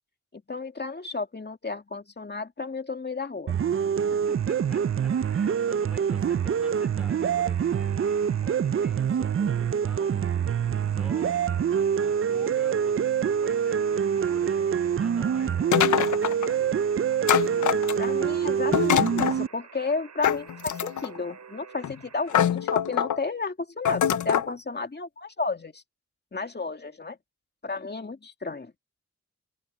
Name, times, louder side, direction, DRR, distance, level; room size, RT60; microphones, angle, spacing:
voice 1, 0.3-3.6 17.6-25.8 26.3-27.2 27.6-28.7, left 3 dB, 35° left, 2.5 m, -33 dB
sound 1, 3.5-19.5, right 8 dB, 45° right, 0.5 m, -25 dB
voice 2, 4.1-10.1 10.8-11.4 11.7-16.7, equal, 5° right, 4.3 m, -49 dB
Alarm, 4.2-22.4, right 6 dB, 75° right, 4.3 m, -49 dB
sound 2, 15.7-16.5 17.3-18.2 18.7-19.4 20.2-21.2 21.8-21.9 22.3-23.2 23.9-24.5, left 10 dB, 85° left, 0.6 m, -24 dB
open air
cardioid pair, 55°, 29 cm